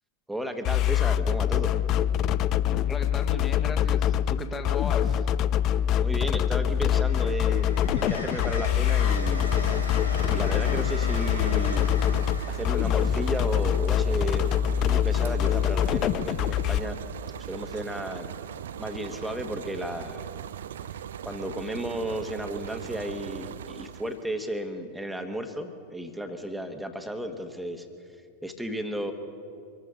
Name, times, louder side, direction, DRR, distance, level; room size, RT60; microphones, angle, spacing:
voice 1, 0.3-1.7 6.0-9.5 10.3-11.9 12.5-14.5 14.8-17.0 17.4-18.3 18.8-20.3 21.2-27.9 28.4-29.1, right 1 dB, 5° right, 5 dB, 1.5 m, -34 dB
sound 1, 0.6-16.8, left 10 dB, 35° left, 0.4 m, -24 dB
voice 2, 2.9-5.3, left 3 dB, 20° left, 6 dB, 1.8 m, -36 dB
Train, 6.4-14.8 16.4-16.6, left 1 dB, 85° left, 1.8 m, -38 dB
sound 2, 8.5-24.3, right 9 dB, 60° right, 0.4 m, -39 dB
24.5 x 14.0 x 3.9 m, 2.3 s
figure-of-eight pair, 90°, 0 cm